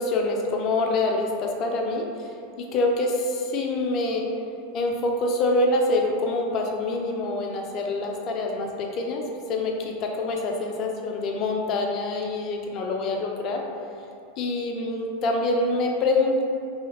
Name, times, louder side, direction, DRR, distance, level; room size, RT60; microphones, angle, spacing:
voice 1, 0.0-4.2 4.7-9.2 9.5-13.6 14.4-16.4, left 2 dB, 45° left, 1 dB, 0.4 m, -26 dB
2.7 x 2.7 x 2.9 m, 2.4 s
hypercardioid pair, 90°, 0 cm